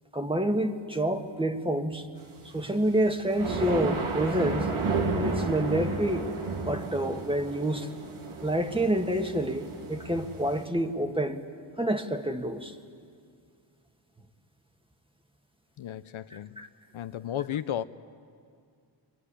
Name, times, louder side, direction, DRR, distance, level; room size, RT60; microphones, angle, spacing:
voice 1, 0.1-2.1 2.5-4.7 5.1-6.3 6.6-7.9 8.4-11.4 11.8-12.7 16.6-16.7, right 1 dB, 10° right, 5 dB, 1.6 m, -28 dB
sound 1, 2.6-10.6, right 3 dB, 80° right, 2.9 m, -32 dB
voice 2, 15.8-16.7 16.9-17.8, left 10 dB, 70° left, 12 dB, 0.8 m, -34 dB
24.5 x 23.5 x 10.0 m, 2.2 s
wide cardioid pair, 100°, 49 cm